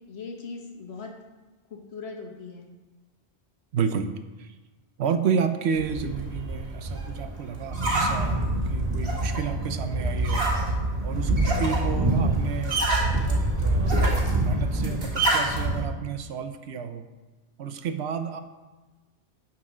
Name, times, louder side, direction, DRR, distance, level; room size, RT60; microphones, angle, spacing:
voice 1, 0.1-1.1 1.7-2.7, left 4 dB, 70° left, 1 dB, 1.5 m, -39 dB
voice 2, 3.7-4.1 4.4-4.5 5.0-12.8 13.1-14.0 14.4-17.0 17.6-18.4, right 7 dB, 75° right, 8 dB, 0.9 m, -31 dB
sound 1, 5.8-15.8, right 2 dB, 55° right, 2.0 m, -25 dB
9.8 x 4.7 x 6.1 m, 1.2 s
omnidirectional pair, 1.1 m